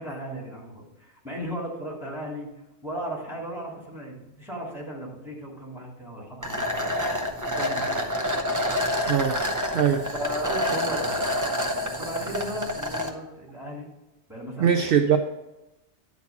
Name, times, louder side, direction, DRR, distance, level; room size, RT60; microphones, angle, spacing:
voice 1, 0.0-2.5 2.8-6.9 7.5-8.0 10.1-11.2 11.9-13.9 14.3-14.9, right 1 dB, ahead, -4 dB, 2.5 m, -36 dB
sound 1, 6.4-13.1, left 1 dB, 20° right, 0.7 m, -27 dB
voice 2, 9.1-9.4 9.7-10.0 14.6-15.2, right 8 dB, 60° right, 6 dB, 0.7 m, -21 dB
10.0 x 4.2 x 7.0 m, 0.97 s
omnidirectional pair, 1.2 m